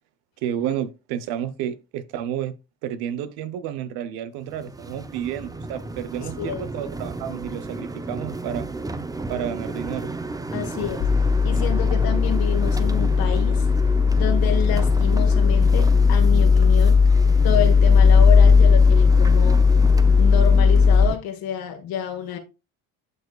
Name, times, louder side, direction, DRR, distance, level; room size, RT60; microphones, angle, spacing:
voice 1, 0.4-2.5 2.8-8.7 9.3-10.1, right 10 dB, 80° right, 0.9 m, -31 dB
sound 1, 4.4-21.2, right 2 dB, 10° right, 0.6 m, -33 dB
voice 2, 6.2-6.6 10.5-11.1 11.4-13.7 14.2-17.1 17.4-19.7 20.2-22.4, left 9 dB, 65° left, 1.5 m, -29 dB
sound 2, 11.0-21.1, left 5 dB, 50° left, 0.8 m, -16 dB
11.5 x 4.2 x 2.4 m
supercardioid pair, 90°, 38 cm